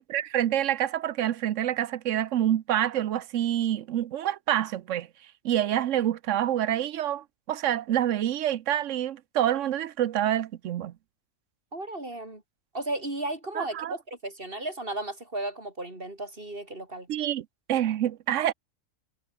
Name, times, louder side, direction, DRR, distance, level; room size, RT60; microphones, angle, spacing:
voice 1, 0.0-5.1 5.4-10.9 13.6-13.9 17.1-18.5, right 11 dB, 70° right, 1.0 m, -27 dB
voice 2, 11.7-12.4 12.7-17.1, right 2 dB, 40° right, 5.2 m, -34 dB
omnidirectional pair, 1.4 m